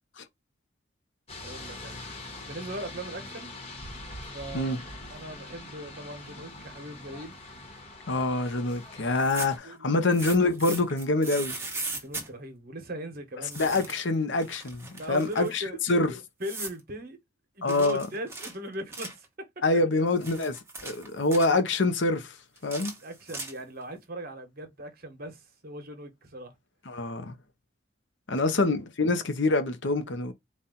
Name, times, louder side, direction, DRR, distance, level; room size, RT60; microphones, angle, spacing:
sound 1, 1.3-9.6, left 2 dB, 30° left, 1.2 m, -43 dB
voice 1, 1.4-2.0 2.5-3.5 4.3-4.8 5.1-7.3 9.6-10.1 12.0-13.9 15.0-15.8 16.4-17.2 17.5-19.3 19.7-19.8 23.0-26.5 28.4-28.5, right 1 dB, 50° right, 1.1 m, -39 dB
voice 2, 8.1-11.5 13.6-16.2 17.6-18.1 19.6-22.3 22.6-22.9 26.9-27.3 28.3-30.3, left 2 dB, 70° left, 0.8 m, -26 dB
sound 2, 9.1-9.7 10.1-12.3 13.5-14.1 14.4-15.6 16.4-16.8 17.7-19.3 20.0-21.6 22.6-23.8, right 3 dB, 15° right, 1.1 m, -38 dB
4.2 x 2.4 x 3.8 m
head